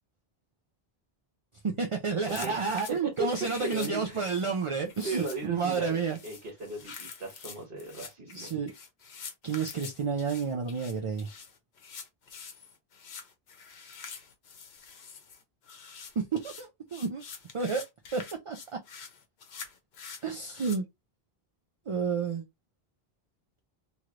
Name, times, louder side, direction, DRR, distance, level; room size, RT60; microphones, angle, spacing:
voice 1, 1.6-6.2 8.2-8.7 9.4-11.3 16.2-17.2 17.5-17.8 18.1-18.8 20.2-20.9 21.9-22.4, right 5 dB, 45° right, 0.4 m, -30 dB
voice 2, 2.2-2.7 3.2-3.3 3.6-4.3 5.0-8.5, right 2 dB, 60° right, 1.3 m, -37 dB
sound 1, 2.3-20.8, left 6 dB, 85° left, 1.1 m, -46 dB
3.1 x 3.0 x 2.5 m
omnidirectional pair, 1.0 m